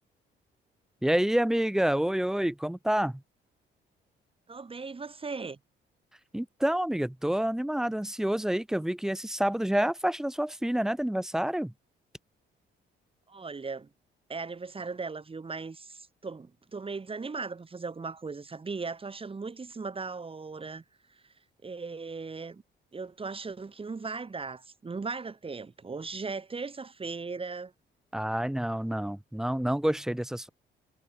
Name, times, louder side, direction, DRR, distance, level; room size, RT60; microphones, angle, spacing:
voice 1, 1.0-3.1 6.3-11.7 28.1-30.5, right 1 dB, 5° right, 0.4 m, -28 dB
voice 2, 4.5-5.6 13.3-13.9 14.3-20.8 21.1-21.2 21.6-22.6 22.9-27.7, right 4 dB, 25° right, 3.0 m, -38 dB
cardioid pair, 90°, 20 cm